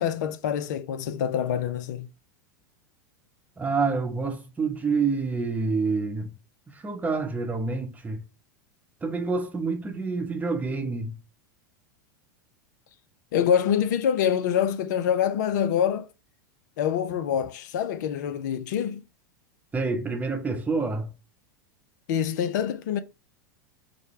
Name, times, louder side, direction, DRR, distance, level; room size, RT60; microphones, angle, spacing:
voice 1, 0.0-2.1 13.3-16.1 16.8-19.0 22.1-23.0, left 9 dB, 65° left, 0.5 m, -25 dB
voice 2, 3.6-6.3 6.7-8.2 9.0-11.2 19.7-21.1, right 4 dB, 15° right, 0.8 m, -27 dB
5.0 x 2.2 x 2.9 m
hypercardioid pair, 95°, 11 cm